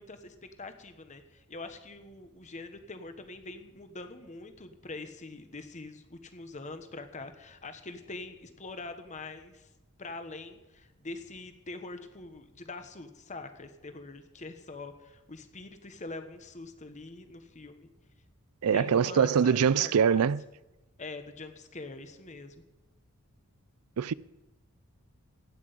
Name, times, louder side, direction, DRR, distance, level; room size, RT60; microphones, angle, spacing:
voice 1, 0.0-9.7 10.0-17.9 18.7-20.3 21.0-22.5, left 3 dB, 35° left, 1.2 m, -44 dB
voice 2, 18.6-20.4 24.0-24.1, right 7 dB, 85° right, 0.4 m, -23 dB
16.0 x 6.2 x 9.4 m
head